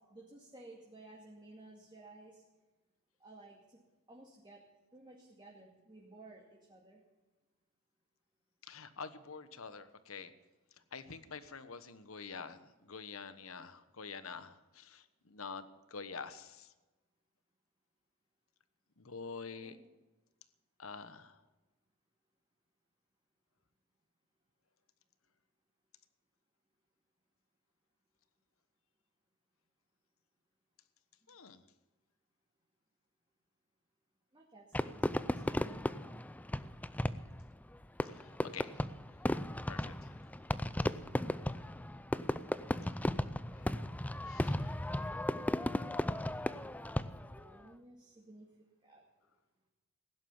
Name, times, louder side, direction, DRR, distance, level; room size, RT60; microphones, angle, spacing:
voice 1, 0.0-2.4 3.2-3.8 4.1-4.6 4.9-7.0 19.5-20.0 34.3-36.2 47.3-48.5 48.8-49.0, right 2 dB, 20° right, -2 dB, 2.2 m, -56 dB
voice 2, 8.7-10.3 10.9-16.7 19.0-19.8 20.8-21.4 31.3-31.6 38.0-38.7 39.7-40.2 43.5-43.7 44.2-44.8, left 5 dB, 70° left, 12 dB, 1.2 m, -47 dB
Fireworks, 34.7-47.5, left 1 dB, 5° left, 0.4 m, -35 dB
16.5 x 11.5 x 7.2 m, 1.1 s
head